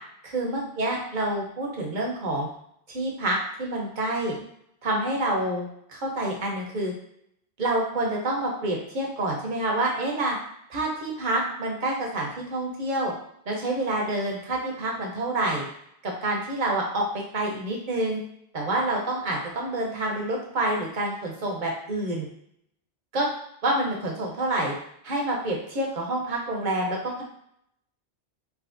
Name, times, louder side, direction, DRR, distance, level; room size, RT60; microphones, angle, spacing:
voice 1, 0.2-2.5 2.9-4.4 4.8-6.9 7.6-10.4 10.7-13.1 13.5-15.6 16.0-18.2 18.5-22.3 23.1-23.3 23.6-24.7 25.0-27.2, right 1 dB, 50° right, -1 dB, 0.9 m, -27 dB
3.6 x 2.7 x 2.5 m, 0.71 s
omnidirectional pair, 1.1 m